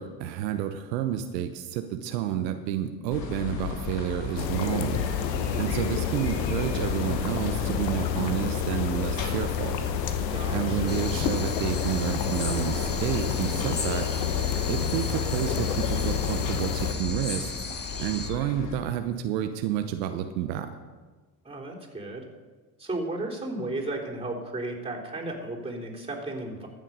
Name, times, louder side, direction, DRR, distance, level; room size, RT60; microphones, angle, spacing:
voice 1, 0.0-5.0 5.6-9.8 10.5-14.1 14.7-17.6 18.0-20.7, right 10 dB, 80° right, 8 dB, 0.9 m, -30 dB
sound 1, 3.1-18.8, left 6 dB, 60° left, 2.6 m, -34 dB
sound 2, 4.4-16.9, left 8 dB, 85° left, 1.0 m, -30 dB
voice 2, 10.3-11.0 21.4-22.3 22.8-26.7, right 2 dB, 10° right, -1 dB, 3.5 m, -34 dB
sound 3, 10.9-18.3, left 4 dB, 20° left, 1.6 m, -37 dB
14.5 x 7.4 x 5.6 m, 1.3 s
hypercardioid pair, 65°, 49 cm